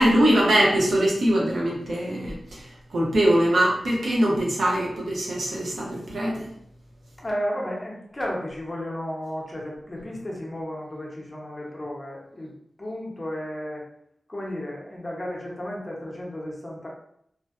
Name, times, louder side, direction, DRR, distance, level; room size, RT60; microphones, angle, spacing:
voice 1, 0.0-2.6 2.9-6.4, right 1 dB, 85° right, -3 dB, 0.7 m, -22 dB
voice 2, 7.2-12.5 12.8-13.9 14.3-16.9, equal, 25° left, -3 dB, 0.7 m, -33 dB
2.6 x 2.1 x 2.4 m, 0.71 s
wide cardioid pair, 80°, 0 cm